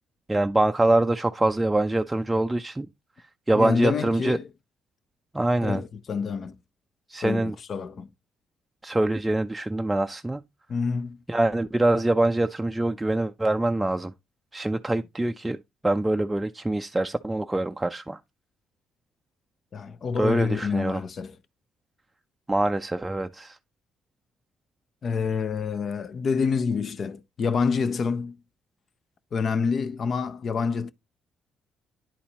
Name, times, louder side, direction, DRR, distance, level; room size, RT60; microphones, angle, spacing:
voice 1, 0.3-2.9 3.5-4.4 5.3-5.8 7.1-7.6 8.8-10.4 11.3-14.1 14.5-15.6 15.8-18.2 20.2-21.0 22.5-23.6, right 2 dB, 10° right, 0.4 m, -24 dB
voice 2, 3.5-4.5 5.6-6.6 7.2-8.1 10.7-11.2 19.7-21.4 25.0-28.4 29.3-30.9, left 5 dB, 50° left, 0.6 m, -27 dB
10.0 x 4.2 x 2.8 m
supercardioid pair, 70°, 0 cm